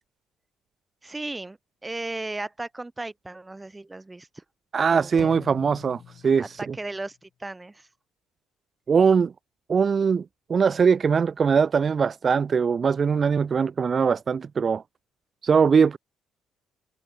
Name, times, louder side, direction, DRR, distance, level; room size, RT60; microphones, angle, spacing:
voice 1, 1.0-4.4 4.9-5.4 6.4-7.9, right 2 dB, 15° right, 4.1 m, -36 dB
voice 2, 4.7-6.7 8.9-9.3 9.7-10.2 10.5-14.8 15.4-16.0, right 6 dB, 40° right, 0.8 m, -21 dB
sound 1, 5.2-7.1, left 9 dB, 60° left, 7.4 m, -45 dB
supercardioid pair, 75°, 0 cm